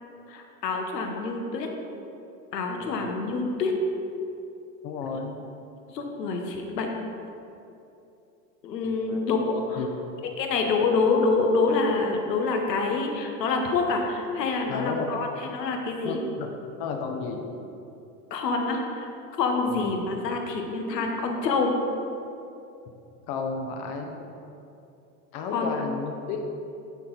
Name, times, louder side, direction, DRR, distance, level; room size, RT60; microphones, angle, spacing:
voice 1, 0.3-1.7 2.5-3.8 5.9-6.9 8.6-9.8 10.4-15.3 15.5-16.2 18.3-19.1 19.4-21.7 25.5-25.8, left 4 dB, 85° left, 2 dB, 1.2 m, -26 dB
voice 2, 2.8-3.1 4.8-5.4 8.8-9.2 9.8-9.9 14.7-15.2 16.0-16.5 16.8-17.4 19.7-20.2 23.3-24.2 25.3-26.4, left 4 dB, 50° left, 3 dB, 1.0 m, -33 dB
10.5 x 4.3 x 4.0 m, 2.8 s
hypercardioid pair, 90°, 48 cm